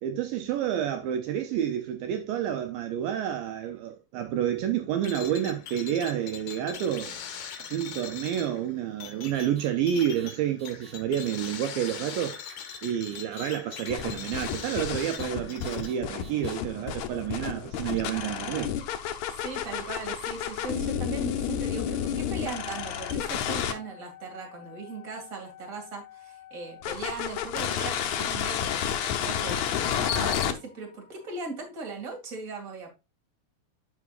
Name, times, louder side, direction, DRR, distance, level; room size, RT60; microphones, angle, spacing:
voice 1, 0.0-7.2 7.6-12.4 12.8-18.8, right 10 dB, 80° right, 2.2 m, -29 dB
sound 1, 5.0-15.9, left 8 dB, 65° left, 2.2 m, -41 dB
sound 2, 9.3-9.7 9.9-10.3 10.6-10.9 11.2-11.5 11.8-12.2 12.4-12.8 13.1-13.4 13.7-14.0 14.3-14.7 15.0-15.3 15.6-15.9 16.2-16.5, right 3 dB, 10° right, 4.7 m, -52 dB
sound 3, 13.9-23.7 26.8-30.5, left 9 dB, 90° left, 1.6 m, -31 dB
voice 2, 19.4-32.9, right 4 dB, 30° right, 1.9 m, -39 dB
9.5 x 6.1 x 2.4 m
omnidirectional pair, 4.4 m